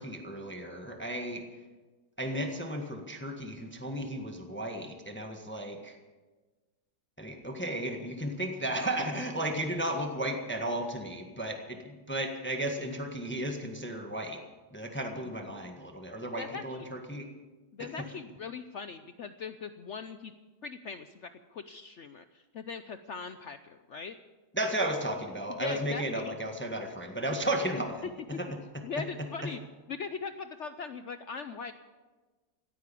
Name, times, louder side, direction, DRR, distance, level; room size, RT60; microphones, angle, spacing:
voice 1, 0.0-1.4 2.2-6.0 7.2-14.4 14.7-17.2 17.8-18.1 24.5-28.5 29.0-29.1 29.4-29.5, right 1 dB, 5° left, 4 dB, 1.3 m, -34 dB
voice 2, 16.4-16.9 17.7-20.3 20.6-24.2 25.6-26.3 28.8-29.6 29.9-31.7, left 5 dB, 70° left, 10 dB, 0.7 m, -40 dB
17.0 x 9.5 x 8.4 m, 1.3 s
omnidirectional pair, 1.9 m